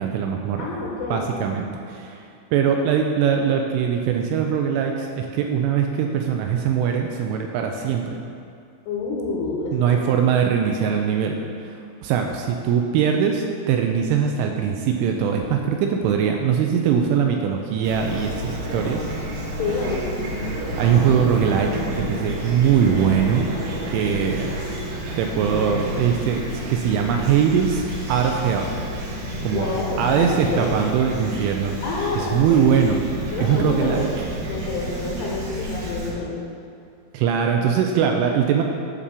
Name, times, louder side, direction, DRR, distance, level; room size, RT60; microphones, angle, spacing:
voice 1, 0.0-0.7 1.1-2.3 2.5-8.2 9.7-19.0 19.5-19.6 20.8-21.7 22.0-23.5 23.9-24.7 25.2-28.7 29.0-29.1 29.4-29.7 30.0-31.8 32.2-33.0 33.4-34.1 37.1-38.6, right 7 dB, 85° right, 3 dB, 2.9 m, -21 dB
voice 2, 0.6-1.3 8.9-10.1 19.6-20.6 29.5-30.7 31.8-32.6 33.3-34.1 34.4-36.4, left 3 dB, 75° left, -4 dB, 2.7 m, -28 dB
Fowl / Chirp tweet, 17.8-36.1, equal, 60° right, 2.5 m, -30 dB
9.9 x 4.2 x 6.8 m, 2.4 s
omnidirectional pair, 5.9 m